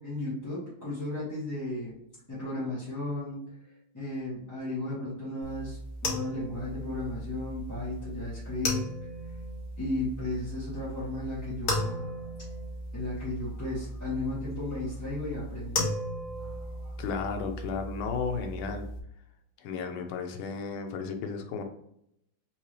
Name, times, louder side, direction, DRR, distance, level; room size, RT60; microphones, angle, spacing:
voice 1, 0.0-2.0 2.3-3.6 3.9-8.9 9.8-12.1 12.9-15.9 16.4-17.0, left 2 dB, 10° left, -10 dB, 1.2 m, -35 dB
sound 1, 5.4-19.0, left 1 dB, 60° left, 1.9 m, -36 dB
voice 2, 17.0-18.9 19.6-21.6, left 5 dB, 75° left, 5 dB, 1.5 m, -34 dB
4.4 x 3.7 x 3.1 m, 0.76 s
omnidirectional pair, 2.4 m